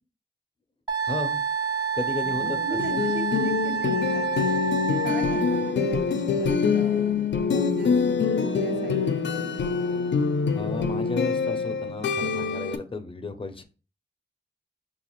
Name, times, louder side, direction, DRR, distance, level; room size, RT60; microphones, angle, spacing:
Wind instrument woodwind instrument, 0.9-5.7, right 6 dB, 25° right, 0.4 m, -28 dB
voice 1, 1.0-1.4 1.9-2.6 10.6-13.6, left 3 dB, 30° left, 8 dB, 0.5 m, -33 dB
voice 2, 2.2-4.5 5.0-9.6, right 1 dB, 65° right, 3 dB, 0.9 m, -37 dB
sound 1, 2.4-12.8, left 5 dB, 90° left, 0.4 m, -25 dB
4.9 x 2.3 x 3.0 m, 0.36 s
wide cardioid pair, 85°, 18 cm